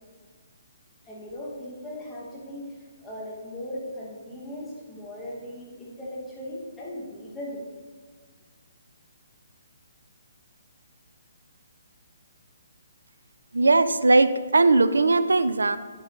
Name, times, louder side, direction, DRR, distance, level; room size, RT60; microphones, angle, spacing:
voice 1, 1.0-7.6, left 1 dB, 5° left, -7 dB, 2.5 m, -38 dB
voice 2, 13.5-15.8, right 3 dB, 70° right, 12 dB, 0.6 m, -19 dB
11.0 x 8.9 x 4.1 m, 1.5 s
figure-of-eight pair, 135°, 0 cm